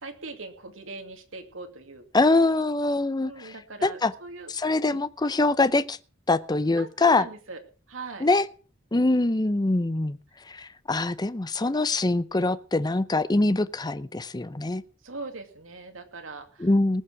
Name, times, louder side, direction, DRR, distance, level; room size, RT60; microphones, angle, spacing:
voice 1, 0.0-2.4 3.2-4.5 4.8-5.0 6.8-7.6 7.9-8.3 15.0-16.7, right 3 dB, 90° right, 2.5 m, -41 dB
voice 2, 2.1-3.5 3.8-4.1 4.5-6.0 6.3-7.3 8.2-8.5 8.9-10.2 10.5-14.8 16.6-17.0, left 2 dB, 20° left, 0.6 m, -23 dB
19.5 x 7.4 x 6.0 m
head